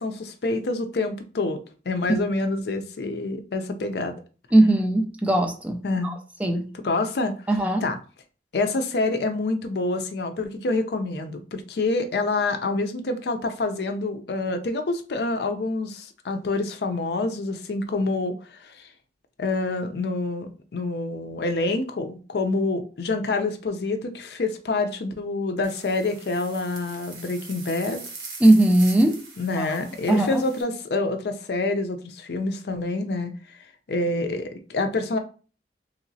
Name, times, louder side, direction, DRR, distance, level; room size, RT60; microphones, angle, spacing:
voice 1, 0.0-1.6 1.9-4.1 5.8-6.2 6.8-7.3 7.8-8.0 8.5-18.3 18.6-18.9 19.4-28.0 29.4-33.3 33.9-35.2, left 2 dB, 65° left, 7 dB, 0.4 m, -27 dB
voice 2, 4.5-6.7 7.5-7.8 28.4-29.2 29.5-29.7 30.1-30.4, right 1 dB, 10° right, 3 dB, 0.3 m, -19 dB
sound 1, 25.6-30.6, right 4 dB, 85° right, 1.0 m, -42 dB
3.1 x 2.8 x 2.6 m, 0.37 s
head